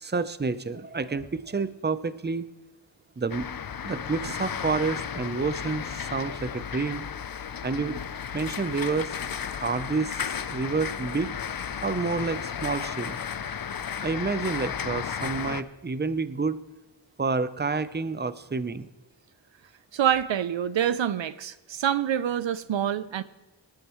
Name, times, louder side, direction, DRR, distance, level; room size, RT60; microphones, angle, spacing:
voice 1, 0.0-2.4 3.2-3.5 3.8-7.0 7.6-8.0 8.3-9.2 9.6-11.3 11.8-13.2 14.0-16.6 17.2-18.9, right 4 dB, 20° right, 0.7 m, -29 dB
sound 1, 3.3-15.6, left 7 dB, 50° left, 0.6 m, -34 dB
voice 2, 19.9-23.2, right 10 dB, 75° right, 0.6 m, -26 dB
19.0 x 11.5 x 3.1 m
wide cardioid pair, 60°, 46 cm